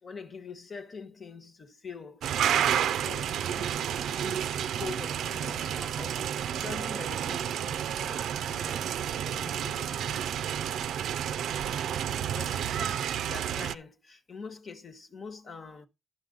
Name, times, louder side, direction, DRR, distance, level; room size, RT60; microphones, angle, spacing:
voice 1, 0.0-10.5 12.3-15.9, left 5 dB, 55° left, 1.4 m, -44 dB
sound 1, 2.2-13.8, right 9 dB, 85° right, 0.4 m, -30 dB
11.5 x 5.9 x 3.8 m
supercardioid pair, 50°, 0 cm